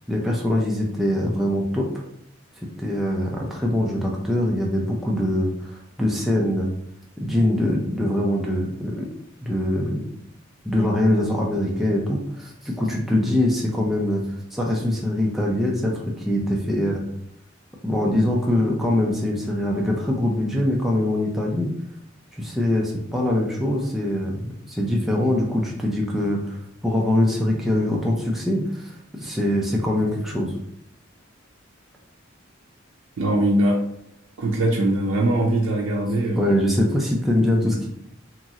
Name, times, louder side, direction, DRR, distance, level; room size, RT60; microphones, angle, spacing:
voice 1, 0.1-1.9 2.8-6.7 7.2-9.1 9.4-10.1 10.6-14.2 14.5-17.0 17.8-21.7 22.4-26.6 26.8-28.9 29.2-30.5 36.4-37.9, left 1 dB, ahead, -3 dB, 0.4 m, -23 dB
voice 2, 33.2-33.8 34.4-36.5 37.6-37.7, right 1 dB, 75° right, -2 dB, 0.5 m, -21 dB
3.0 x 2.5 x 2.7 m, 0.73 s
head